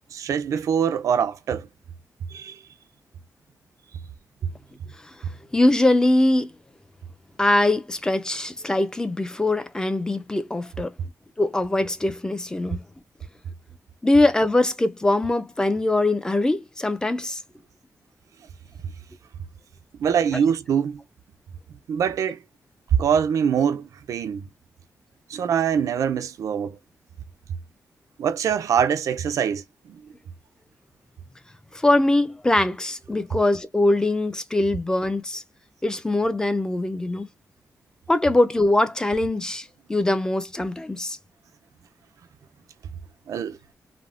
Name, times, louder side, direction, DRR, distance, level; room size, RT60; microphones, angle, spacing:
voice 1, 0.1-1.7 2.3-2.6 18.8-18.9 19.9-21.0 21.9-22.4 22.9-24.5 25.3-26.8 28.2-30.0 43.3-43.6, right 8 dB, 75° right, 0.4 m, -24 dB
voice 2, 5.5-6.5 7.4-10.9 11.4-12.8 14.0-17.4 31.7-35.4 35.8-37.3 38.1-41.2, left 2 dB, 10° left, 0.3 m, -22 dB
3.4 x 2.0 x 2.4 m
wide cardioid pair, 150°, 6 cm